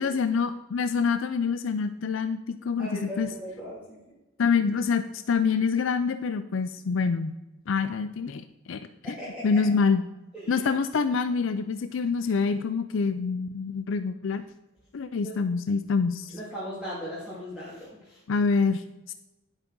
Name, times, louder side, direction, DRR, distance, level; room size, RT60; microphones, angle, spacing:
voice 1, 0.0-3.3 4.4-7.3 7.7-9.2 9.4-10.0 10.5-14.4 14.9-16.4 18.3-19.1, left 5 dB, 60° left, 10 dB, 0.4 m, -26 dB
voice 2, 2.8-4.0 9.0-9.8 10.3-10.7 15.2-15.3 16.3-18.2, equal, 5° right, -10 dB, 2.3 m, -38 dB
9.9 x 8.2 x 3.8 m, 1.0 s
head